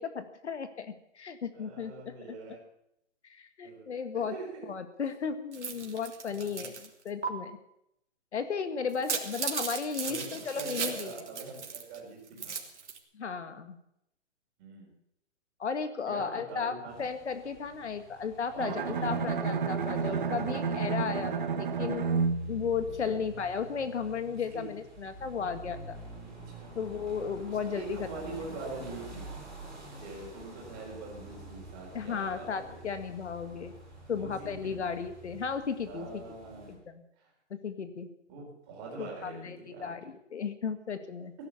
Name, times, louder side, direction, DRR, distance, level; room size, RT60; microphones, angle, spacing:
voice 1, 0.0-2.4 3.2-4.4 4.7-7.6 8.3-11.1 13.1-13.8 15.6-26.0 26.8-28.3 31.9-33.7 34.1-36.2 36.7-37.0 37.5-38.1 39.0-41.3, left 6 dB, 70° left, 9 dB, 1.8 m, -35 dB
voice 2, 1.5-2.6 3.6-3.9 4.1-4.7 5.6-5.8 6.3-6.7 10.0-12.6 14.6-14.9 16.0-17.0 18.5-20.5 21.1-21.8 23.1-23.2 24.5-24.7 26.6-26.7 27.5-29.3 30.0-32.8 34.1-34.8 35.9-36.8 37.2-37.3 38.3-39.9, right 3 dB, 20° right, -1 dB, 4.1 m, -44 dB
sound 1, 5.5-6.9 7.2-7.3 8.9-12.0 12.3-13.0, right 6 dB, 75° right, 3.3 m, -36 dB
sound 2, 16.9-36.7, right 1 dB, ahead, 4.5 m, -49 dB
Bowed string instrument, 18.6-23.6, right 5 dB, 45° right, 1.4 m, -31 dB
18.0 x 11.5 x 7.1 m, 0.80 s
hypercardioid pair, 175°, 35 cm